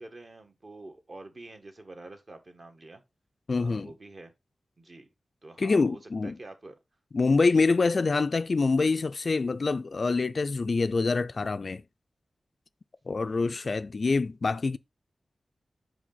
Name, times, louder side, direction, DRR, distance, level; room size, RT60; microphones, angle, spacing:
voice 1, 0.0-3.0 3.6-4.3 4.8-5.1 5.4-6.7 13.2-13.8, right 2 dB, 45° right, 1.4 m, -47 dB
voice 2, 3.5-3.9 5.6-6.3 7.1-11.8 13.1-14.8, left 4 dB, 50° left, 0.3 m, -25 dB
5.9 x 5.0 x 3.9 m
wide cardioid pair, 110°, 0 cm